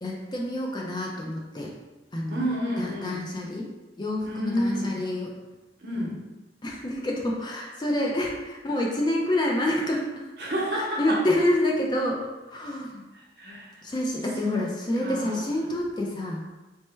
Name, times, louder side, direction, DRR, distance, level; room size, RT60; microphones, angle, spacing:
voice 1, 0.0-1.7 2.1-2.5 2.8-3.7 4.0-5.3 5.9-6.1 6.6-10.2 10.7-12.2 12.5-13.0 13.8-16.4, left 1 dB, 25° left, -1 dB, 0.4 m, -28 dB
voice 2, 2.3-3.2 4.3-5.0 5.8-6.2 10.4-11.2 13.4-13.8 14.4-14.7 15.0-15.5, equal, 65° right, -4 dB, 0.8 m, -30 dB
3.1 x 2.1 x 3.2 m, 1.1 s
head